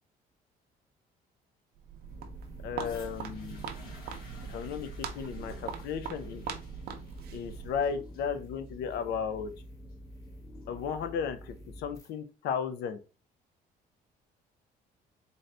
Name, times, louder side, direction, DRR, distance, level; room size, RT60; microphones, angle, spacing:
Walk footsteps, 1.7-7.9, right 7 dB, 65° right, 0.6 m, -42 dB
sound 1, 2.1-12.1, equal, 20° left, 1.0 m, -48 dB
voice 1, 2.6-3.7 4.5-6.4 7.3-9.5 10.7-13.0, left 7 dB, 80° left, 10 dB, 0.6 m, -35 dB
sound 2, 2.8-10.8 11.6-11.7, left 3 dB, 65° left, 2.0 m, -56 dB
4.0 x 2.7 x 3.2 m, 0.33 s
cardioid pair, 110°, 17 cm